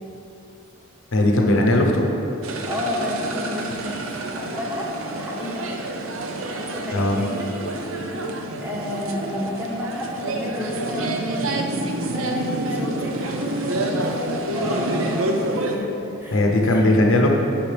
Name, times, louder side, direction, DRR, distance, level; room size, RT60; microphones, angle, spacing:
voice 1, 1.1-2.1 6.9-7.2 16.3-17.3, left 1 dB, 65° left, 1 dB, 0.8 m, -18 dB
sound 1, 2.4-15.8, right 2 dB, 75° right, 0.7 m, -28 dB
voice 2, 2.7-3.7 4.3-5.7 6.6-7.5 8.6-11.7 12.1-15.9 16.2-17.0, left 1 dB, 10° right, -4 dB, 1.3 m, -30 dB
10.5 x 5.8 x 3.4 m, 3.0 s
head